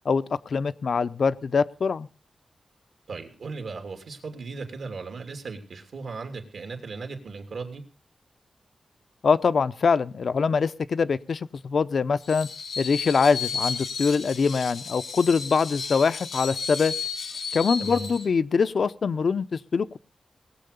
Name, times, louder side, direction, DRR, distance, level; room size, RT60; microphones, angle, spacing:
voice 1, 0.1-2.1 9.2-12.5 12.8-16.9 17.5-20.0, left 5 dB, 65° left, 13 dB, 0.6 m, -24 dB
voice 2, 3.1-7.8 17.8-18.1, right 4 dB, 75° right, 6 dB, 3.0 m, -37 dB
Screech, 12.2-18.3, left 5 dB, 90° left, 1.9 m, -33 dB
19.0 x 7.7 x 6.8 m, 0.38 s
wide cardioid pair, 125°, 0 cm